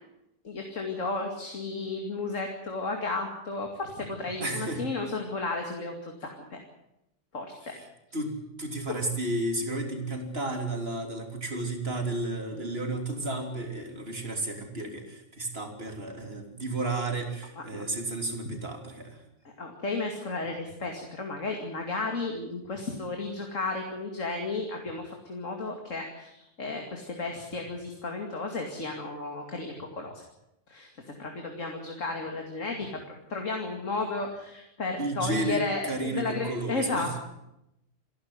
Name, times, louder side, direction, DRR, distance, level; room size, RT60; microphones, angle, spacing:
voice 1, 0.4-6.6 7.3-7.7 12.5-12.7 17.6-17.8 18.4-18.5 19.4-30.2 30.7-37.2, left 3 dB, 85° left, 3 dB, 2.8 m, -33 dB
voice 2, 4.4-4.9 7.7-7.9 8.1-19.2 35.0-37.2, right 2 dB, 55° right, 4 dB, 3.5 m, -32 dB
27.5 x 11.5 x 9.6 m, 0.87 s
omnidirectional pair, 1.3 m